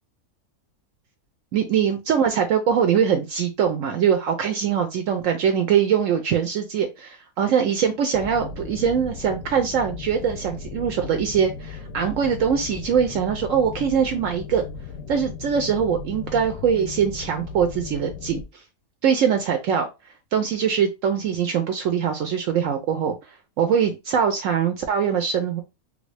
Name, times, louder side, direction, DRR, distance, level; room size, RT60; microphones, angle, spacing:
voice 1, 1.5-14.7 15.1-18.4 19.0-19.9 20.3-23.1 23.6-25.6, right 7 dB, 70° right, 5 dB, 0.8 m, -22 dB
sound 1, 8.1-18.4, left 5 dB, 70° left, 0.9 m, -36 dB
3.3 x 2.6 x 3.2 m, 0.25 s
omnidirectional pair, 1.6 m